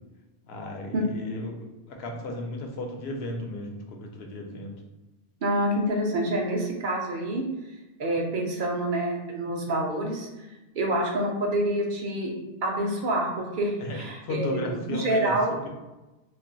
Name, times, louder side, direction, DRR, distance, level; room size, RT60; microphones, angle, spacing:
voice 1, 0.4-1.6 1.9-4.7 13.8-15.3, left 1 dB, 80° left, 2 dB, 0.8 m, -34 dB
voice 2, 5.4-7.5 8.0-10.3 10.8-12.3 12.6-15.6, right 1 dB, 60° right, 0 dB, 0.6 m, -27 dB
2.4 x 2.2 x 3.7 m, 1.1 s
omnidirectional pair, 1.0 m